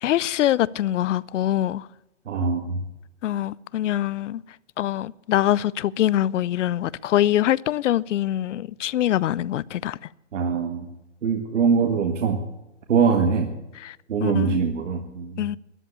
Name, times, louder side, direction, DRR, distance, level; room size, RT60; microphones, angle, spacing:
voice 1, 0.0-1.9 3.2-4.4 4.8-10.0 13.8-14.7 15.4-15.6, left 12 dB, 80° left, 0.6 m, -24 dB
voice 2, 2.3-2.8 10.3-10.9 11.2-12.4 12.9-13.5 14.1-15.4, right 5 dB, 85° right, 1.9 m, -23 dB
13.0 x 9.9 x 8.3 m
hypercardioid pair, 170°, 36 cm